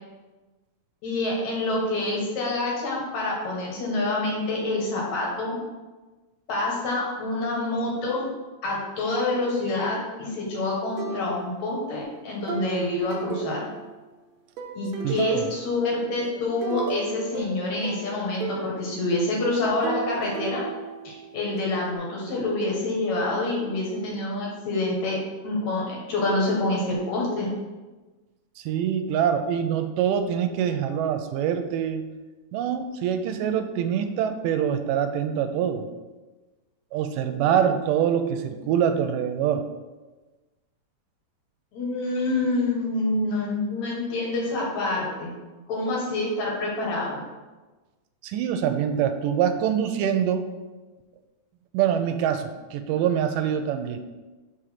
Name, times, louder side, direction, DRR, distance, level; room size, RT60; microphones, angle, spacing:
voice 1, 1.0-5.6 6.5-8.3 8.6-13.7 14.8-20.6 21.0-25.2 25.4-27.5 41.7-45.3 45.7-47.2, left 2 dB, 65° left, -3 dB, 2.8 m, -27 dB
sound 1, 11.0-11.8 12.5-14.1 14.6-15.8 16.2-18.8 19.8-21.6, right 5 dB, 70° right, 1.8 m, -34 dB
voice 2, 15.0-15.5 28.6-32.1 32.5-35.9 36.9-39.6 48.2-50.5 51.7-54.0, right 8 dB, 90° right, 8 dB, 2.2 m, -25 dB
5.3 x 4.9 x 5.9 m, 1.2 s
omnidirectional pair, 3.7 m